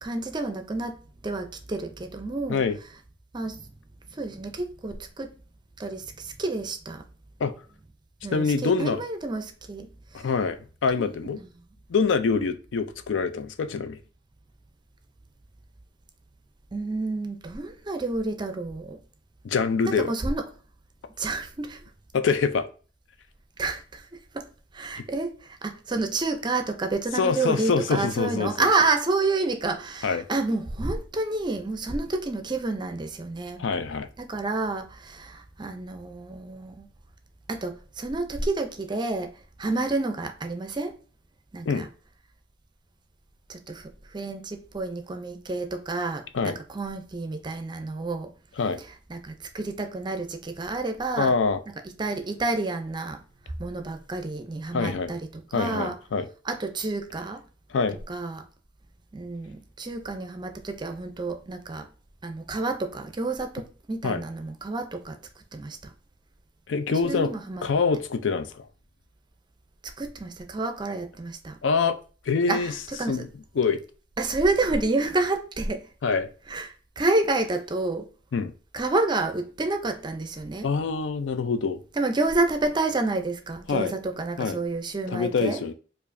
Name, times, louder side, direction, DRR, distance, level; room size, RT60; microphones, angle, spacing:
voice 1, 0.0-2.6 3.3-3.7 4.1-5.4 5.8-7.0 8.2-10.3 10.9-11.5 16.7-19.0 19.8-20.4 21.2-21.8 23.6-33.6 34.2-36.9 37.5-41.0 41.5-41.9 43.5-48.3 48.8-51.3 51.7-51.8 52.0-56.0 56.4-57.4 58.1-58.5 59.1-61.9 62.2-65.9 66.9-67.7 69.8-71.6 72.5-73.2 74.2-75.9 76.5-78.1 78.7-80.7 81.9-85.6, right 3 dB, 25° right, 0.5 m, -29 dB
voice 2, 8.3-9.0 10.1-11.4 11.9-14.0 19.4-20.1 22.1-22.7 27.2-28.7 30.0-30.3 33.6-34.1 41.7-41.9 46.3-46.6 48.6-48.8 51.2-51.6 54.7-55.1 55.5-56.3 57.7-58.0 64.0-64.2 66.7-67.3 67.6-68.7 71.6-72.0 72.3-72.7 73.1-73.3 73.6-73.8 76.0-76.3 78.3-78.5 80.6-81.8 83.7-83.9 84.4-84.6 85.1-85.7, left 5 dB, 85° left, 0.4 m, -25 dB
4.7 x 2.5 x 2.5 m
head